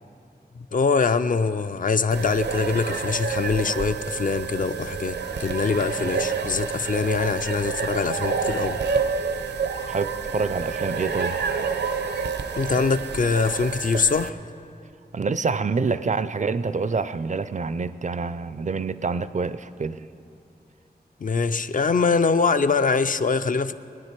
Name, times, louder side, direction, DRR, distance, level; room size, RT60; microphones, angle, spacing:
voice 1, 0.7-8.8 12.5-14.4 21.2-23.7, left 4 dB, 50° left, 0.4 m, -23 dB
sound 1, 2.1-14.3, right 5 dB, 80° right, 0.7 m, -28 dB
voice 2, 9.9-11.4 15.1-20.1, right 4 dB, 45° right, 0.4 m, -27 dB
19.5 x 9.7 x 4.5 m
wide cardioid pair, 90°, 17 cm